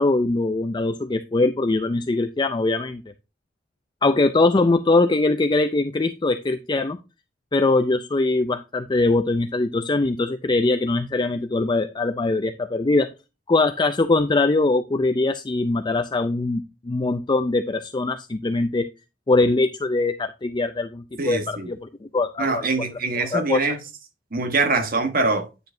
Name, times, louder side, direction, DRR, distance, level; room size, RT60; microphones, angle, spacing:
voice 1, 0.0-3.0 4.0-7.0 7.5-13.1 13.5-18.9 19.3-22.7 23.1-23.8, left 2 dB, 25° left, 0.4 m, -22 dB
voice 2, 21.2-21.7 22.4-23.8 24.3-25.5, right 3 dB, 50° right, 1.3 m, -23 dB
9.6 x 6.9 x 2.6 m
head